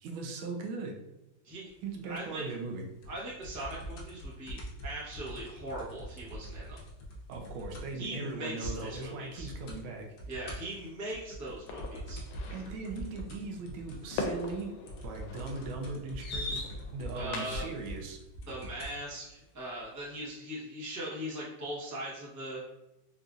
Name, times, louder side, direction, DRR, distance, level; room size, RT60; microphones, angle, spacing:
voice 1, 0.0-1.0 1.8-2.8 7.3-10.1 12.5-14.7 15.0-16.6 16.9-18.2, right 3 dB, 85° right, 2 dB, 1.4 m, -39 dB
voice 2, 2.0-2.4 3.1-6.8 7.9-9.5 10.3-12.2 17.1-17.7 18.5-22.6, right 1 dB, 20° right, -7 dB, 0.5 m, -40 dB
sound 1, 3.0-8.1 8.3-8.4 8.6-9.1 9.4-9.8 10.2-19.0 19.8-19.9, equal, 65° left, 1.1 m, -43 dB
sound 2, 11.7-17.8, left 3 dB, 85° left, 1.4 m, -40 dB
4.2 x 2.5 x 2.4 m, 0.93 s
omnidirectional pair, 2.1 m